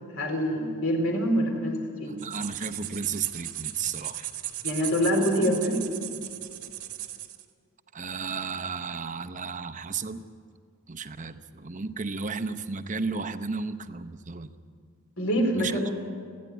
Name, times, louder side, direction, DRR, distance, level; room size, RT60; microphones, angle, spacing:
voice 1, 0.1-2.1 4.6-5.8 15.2-15.9, equal, 65° left, 2 dB, 4.1 m, -25 dB
voice 2, 2.1-4.3 7.9-10.2 10.9-14.5 15.5-15.9, right 5 dB, 35° right, 10 dB, 0.8 m, -33 dB
sound 1, 2.2-7.4, right 13 dB, 80° right, 1.5 m, -37 dB
28.5 x 10.5 x 9.5 m, 2.1 s
head